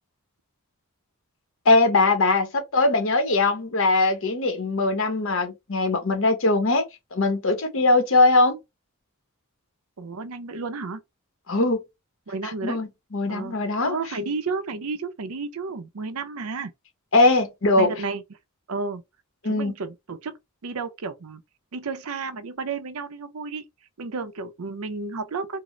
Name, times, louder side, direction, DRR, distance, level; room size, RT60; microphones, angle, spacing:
voice 1, 1.7-6.8 7.1-8.6 11.5-11.8 12.6-14.0 17.1-17.9 19.4-19.7, left 2 dB, 65° left, 0.9 m, -21 dB
voice 2, 10.0-11.0 12.3-12.8 13.3-13.6 13.8-16.7 17.8-18.4 18.7-19.0 19.4-20.4 20.6-21.4 21.7-23.6 24.0-25.6, right 4 dB, 85° right, 0.6 m, -32 dB
3.7 x 2.0 x 3.1 m
head